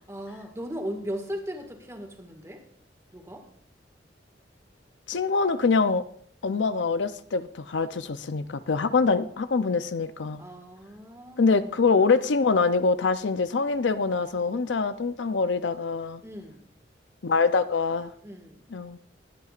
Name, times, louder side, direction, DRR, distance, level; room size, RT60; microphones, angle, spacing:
voice 1, 0.0-2.6 3.1-3.4 10.4-11.7 16.2-16.7 18.2-18.6, equal, 15° right, 3 dB, 1.9 m, -37 dB
voice 2, 5.1-6.0 6.4-10.4 11.4-16.2 17.2-18.1 18.7-19.0, left 4 dB, 85° left, 12 dB, 0.6 m, -24 dB
21.0 x 9.4 x 2.5 m, 0.62 s
head